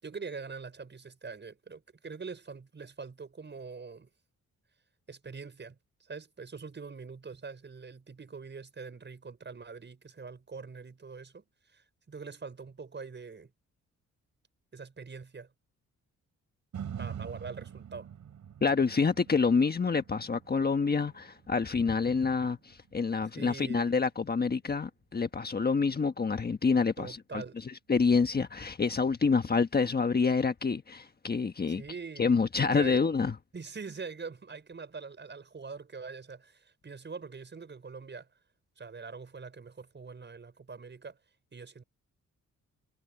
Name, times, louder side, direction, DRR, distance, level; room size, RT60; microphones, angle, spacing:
voice 1, 0.0-4.1 5.1-13.5 14.7-15.5 17.0-18.1 23.3-23.9 27.0-27.6 31.7-33.0 33.5-38.3 38.8-41.2 41.5-41.8, right 5 dB, 35° right, 6.2 m, -44 dB
sound 1, 16.7-24.9 25.4-25.5, right 8 dB, 70° right, 4.7 m, -46 dB
voice 2, 18.6-27.4 27.9-31.8 32.2-33.3, left 5 dB, 30° left, 1.3 m, -27 dB
cardioid pair, 100°, 30 cm